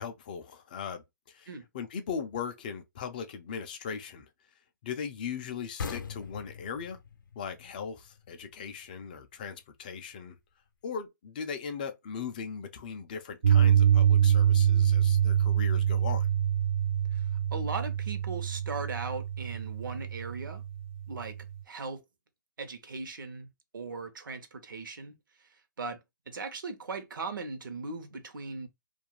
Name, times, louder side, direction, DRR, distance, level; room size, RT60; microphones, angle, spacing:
voice 1, 0.0-1.5 1.7-4.3 4.8-7.0 7.4-10.4 10.8-16.3, left 6 dB, 25° left, 0.3 m, -39 dB
sound 1, 5.8-9.2, left 5 dB, 80° left, 0.5 m, -41 dB
Piano, 13.4-21.5, right 9 dB, 45° right, 0.4 m, -25 dB
voice 2, 17.1-20.6 21.1-21.4 21.7-22.0 22.6-23.5 23.7-28.7, right 4 dB, 85° right, 0.8 m, -39 dB
2.4 x 2.2 x 2.9 m
hypercardioid pair, 165°, 11 cm